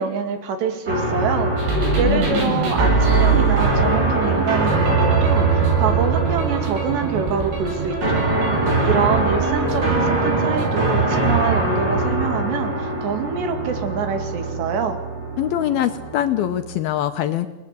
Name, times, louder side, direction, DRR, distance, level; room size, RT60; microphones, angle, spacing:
voice 1, 0.0-8.3 8.8-15.0, right 6 dB, 75° right, 7 dB, 4.5 m, -25 dB
sound 1, 0.9-16.8, right 3 dB, 25° right, 4.4 m, -22 dB
sound 2, 1.6-10.7, right 4 dB, 90° right, 9.5 m, -25 dB
voice 2, 1.7-2.4 15.4-17.5, left 12 dB, 75° left, 9 dB, 2.4 m, -23 dB
29.5 x 19.0 x 8.4 m, 1.1 s
omnidirectional pair, 5.1 m